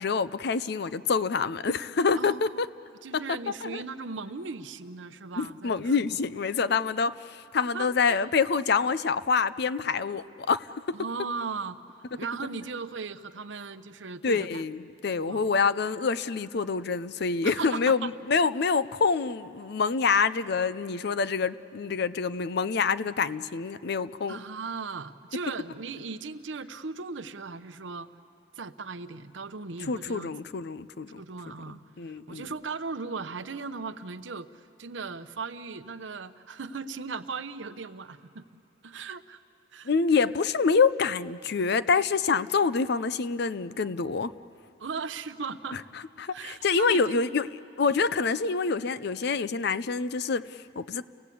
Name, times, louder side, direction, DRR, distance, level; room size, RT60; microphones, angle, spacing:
voice 1, 0.0-2.7 3.6-3.8 5.4-11.0 14.2-24.4 29.9-31.2 31.5-32.5 39.8-44.3 45.7-45.8 46.2-47.5 47.8-51.0, left 5 dB, 60° left, 0.5 m, -26 dB
voice 2, 2.2-2.6 3.0-6.0 7.7-8.2 10.9-11.8 12.1-14.6 15.2-15.4 17.4-18.1 24.3-28.1 28.6-30.3 31.2-38.4 38.8-39.4 39.7-39.9 44.8-45.8 46.3-47.3, right 4 dB, 85° right, 0.8 m, -37 dB
30.0 x 18.5 x 8.5 m
head